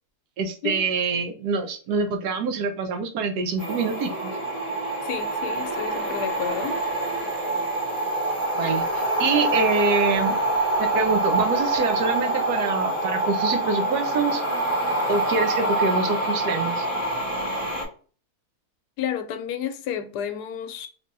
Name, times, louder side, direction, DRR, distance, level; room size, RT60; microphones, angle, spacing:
voice 1, 0.4-4.3 8.6-10.4 10.8-14.4 15.1-16.9, right 4 dB, 80° right, 1.2 m, -25 dB
sound 1, 3.6-17.8, right 2 dB, 55° right, 1.8 m, -25 dB
voice 2, 5.0-6.8 19.0-20.9, left 8 dB, 90° left, 1.1 m, -31 dB
3.3 x 3.2 x 2.5 m
omnidirectional pair, 1.7 m